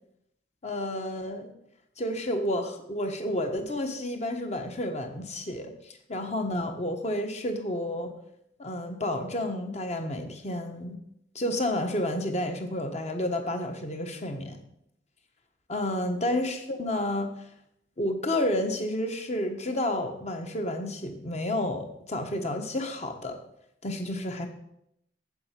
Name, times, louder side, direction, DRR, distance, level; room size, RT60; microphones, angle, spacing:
voice 1, 0.6-1.5 2.0-8.2 8.6-11.0 11.3-14.6 15.7-17.3 18.0-23.4 23.8-24.5, left 1 dB, 40° left, 5 dB, 1.2 m, -30 dB
7.8 x 7.7 x 5.9 m, 0.77 s
head